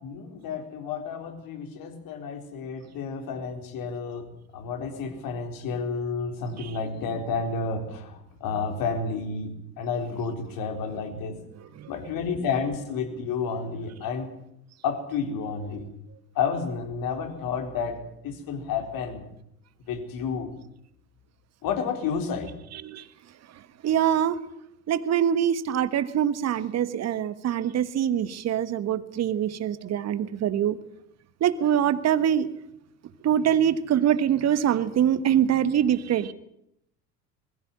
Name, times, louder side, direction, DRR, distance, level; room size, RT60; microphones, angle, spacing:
voice 1, 0.0-4.3 4.5-11.4 11.9-14.3 14.8-15.9 16.4-19.2 19.9-20.5 21.6-22.5, left 5 dB, 45° left, 6 dB, 4.2 m, -31 dB
voice 2, 11.5-11.9 22.7-23.1 23.5-24.4 24.9-30.8 31.4-32.5 33.2-36.3, right 9 dB, 35° right, 16 dB, 1.4 m, -24 dB
21.5 x 15.5 x 9.8 m, 0.78 s
figure-of-eight pair, 70°, 46 cm